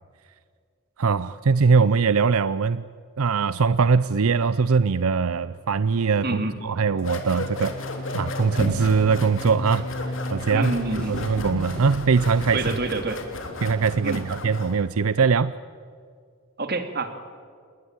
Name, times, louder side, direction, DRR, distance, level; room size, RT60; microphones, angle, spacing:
voice 1, 1.0-2.8 3.2-7.8 8.1-10.7 11.1-12.6 13.6-15.5, right 5 dB, 85° right, 15 dB, 0.6 m, -21 dB
sound 1, 4.6-11.5, left 1 dB, 35° left, 1.1 m, -36 dB
voice 2, 6.2-6.6 10.4-11.2 12.5-13.2 14.0-14.2 16.6-17.2, right 3 dB, 45° right, 7 dB, 2.3 m, -27 dB
sound 2, 7.0-14.8, left 2 dB, 65° left, 3.1 m, -34 dB
sound 3, 10.6-13.0, equal, 5° left, 7.8 m, -41 dB
28.5 x 21.0 x 8.8 m, 2.1 s
head